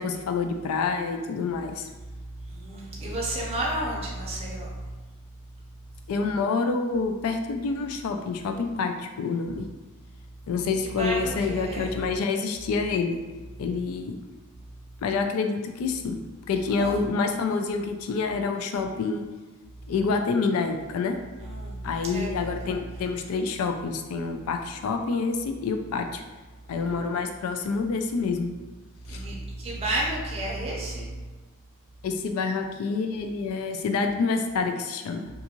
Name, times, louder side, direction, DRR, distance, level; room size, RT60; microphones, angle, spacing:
voice 1, 0.0-1.9 6.1-9.7 10.5-13.2 13.6-14.2 15.0-16.2 16.5-19.2 19.9-21.1 21.8-26.2 26.7-28.5 29.1-29.2 32.0-35.3, left 4 dB, 75° left, 5 dB, 0.3 m, -27 dB
voice 2, 2.4-4.9 11.0-12.0 16.8-16.9 21.4-22.8 29.0-31.2, right 1 dB, 25° right, -5 dB, 0.5 m, -31 dB
2.6 x 2.3 x 2.9 m, 1.2 s
head